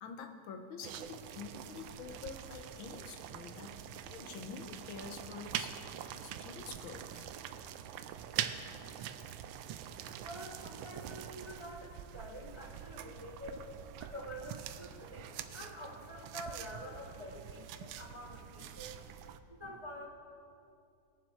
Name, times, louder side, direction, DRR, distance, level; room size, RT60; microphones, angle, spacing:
voice 1, 0.0-3.8 4.1-5.8 6.2-7.3, left 5 dB, 90° left, 6 dB, 1.8 m, -47 dB
sound 1, 0.8-19.4, right 10 dB, 85° right, 1.4 m, -44 dB
voice 2, 10.2-19.0 19.5-20.1, equal, 25° right, 0 dB, 0.7 m, -47 dB
21.0 x 7.1 x 4.4 m, 2.5 s
omnidirectional pair, 2.1 m